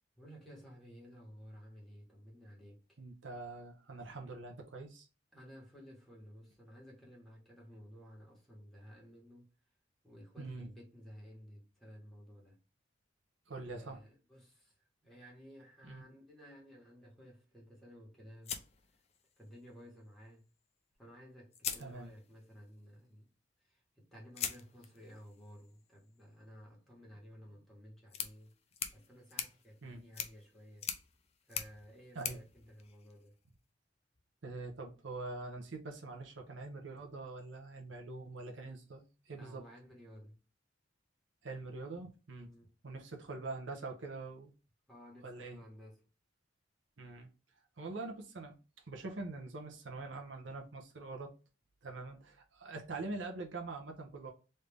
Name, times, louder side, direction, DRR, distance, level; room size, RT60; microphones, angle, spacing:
voice 1, 0.2-3.0 5.3-9.5 10.0-12.6 13.6-14.7 15.0-18.6 19.4-20.5 21.0-23.3 23.6-28.5 28.9-30.9 31.5-33.3 38.5-38.7 39.4-40.4 42.4-42.7 44.9-46.0, equal, ahead, 1.4 m, -55 dB
voice 2, 3.0-5.1 10.4-10.7 13.5-14.0 15.8-16.0 21.8-22.1 29.8-30.0 32.1-32.4 34.4-39.6 41.4-42.5 42.8-44.5 45.2-45.6 47.0-47.3 47.8-48.5 48.9-51.3 51.8-54.3, right 3 dB, 75° right, 0.8 m, -44 dB
sound 1, 18.4-19.6 20.9-21.0 21.5-22.5 24.3-33.5, left 8 dB, 35° left, 0.5 m, -44 dB
3.2 x 2.6 x 3.4 m
head